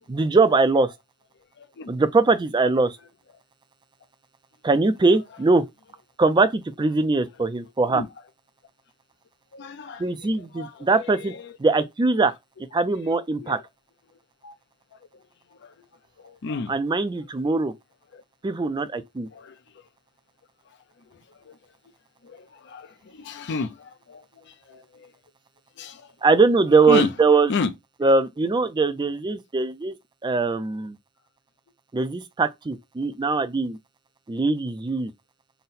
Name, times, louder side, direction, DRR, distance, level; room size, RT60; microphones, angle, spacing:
voice 1, 0.1-0.9 1.9-3.0 4.6-5.6 6.2-8.0 10.0-11.3 11.6-12.3 12.7-13.6 16.7-17.7 18.4-19.3 26.2-27.5 28.0-30.0 30.2-31.0 31.9-33.8 34.3-35.1, right 3 dB, 20° right, 0.4 m, -21 dB
voice 2, 1.6-1.9 7.9-8.1 9.5-10.0 10.5-11.5 13.0-13.1 13.4-13.6 14.4-14.5 15.6-15.7 16.2-16.7 18.1-18.2 19.3-19.6 21.5-21.6 22.2-25.1 25.8-26.1 26.9-27.1 27.5-27.7, left 4 dB, 50° left, 0.5 m, -32 dB
3.9 x 2.1 x 4.0 m
head